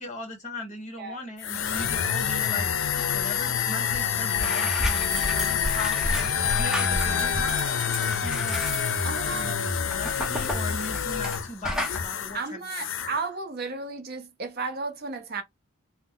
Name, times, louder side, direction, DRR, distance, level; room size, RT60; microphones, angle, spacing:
voice 1, 0.0-2.8 3.1-8.6 9.3-12.8, left 2 dB, 35° left, 1.3 m, -38 dB
sound 1, 1.4-12.4 12.6-13.2, left 7 dB, 75° left, 0.5 m, -27 dB
sound 2, 3.9-4.0 4.3-11.4 11.6-12.0, equal, 5° right, 0.7 m, -32 dB
voice 2, 9.0-9.8 12.3-15.4, right 4 dB, 50° right, 0.6 m, -34 dB
2.8 x 2.1 x 3.7 m
head